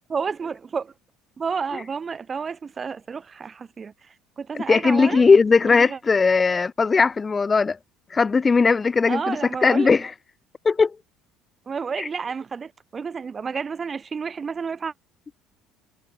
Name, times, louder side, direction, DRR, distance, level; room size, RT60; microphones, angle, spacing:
voice 1, 0.1-0.9 1.4-3.9 4.4-5.2 5.6-6.0 9.1-9.9 11.7-14.9, right 5 dB, 30° right, 4.7 m, -30 dB
voice 2, 4.7-7.8 8.1-9.4 9.6-10.1 10.6-10.9 12.0-12.1, left 4 dB, 25° left, 1.4 m, -18 dB
supercardioid pair, 105°, 0 cm